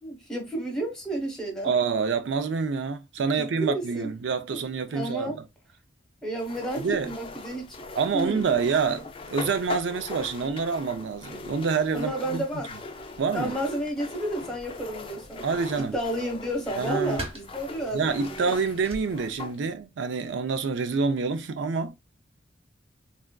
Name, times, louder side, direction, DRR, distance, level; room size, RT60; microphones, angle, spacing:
voice 1, 0.0-1.7 3.3-4.1 4.5-4.6 4.9-5.4 6.2-7.7 8.1-8.4 11.9-12.7 13.3-15.5 15.7-18.5, right 1 dB, 5° left, 0.9 m, -31 dB
voice 2, 1.6-5.4 6.8-7.1 8.0-12.4 13.2-13.6 15.4-15.9 16.8-17.2 17.9-22.0, right 5 dB, 85° right, 0.4 m, -27 dB
sound 1, 6.4-19.6, left 3 dB, 30° left, 0.4 m, -41 dB
sound 2, 14.5-19.9, right 1 dB, 35° right, 0.7 m, -45 dB
3.4 x 2.4 x 2.2 m
head